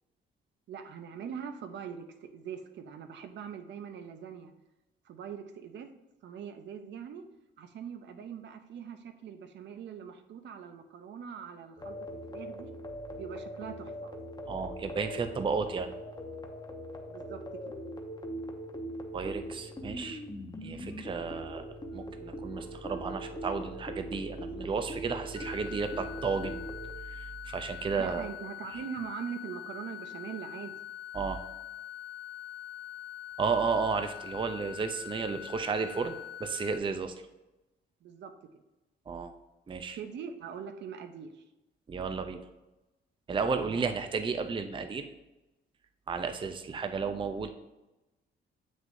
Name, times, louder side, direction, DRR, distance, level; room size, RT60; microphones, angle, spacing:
voice 1, 0.7-4.5 5.0-7.2 7.6-12.7 13.1-14.2 17.1-17.7 28.0-30.7 38.0-38.3 40.0-41.4 43.5-43.8, right 7 dB, 65° right, 8 dB, 0.7 m, -42 dB
sound 1, 11.8-26.9, equal, 20° left, 0.9 m, -41 dB
voice 2, 14.5-15.9 19.1-20.2 20.6-26.5 27.0-28.3 28.7-28.8 31.1-31.4 33.4-37.1 39.1-39.3 39.7-40.0 41.9-42.4 43.3-45.1 46.1-47.5, right 5 dB, 25° right, 8 dB, 0.5 m, -33 dB
sound 2, 25.4-36.8, left 12 dB, 50° left, 0.5 m, -44 dB
7.3 x 6.3 x 2.6 m, 1.0 s
cardioid pair, 90°, 20 cm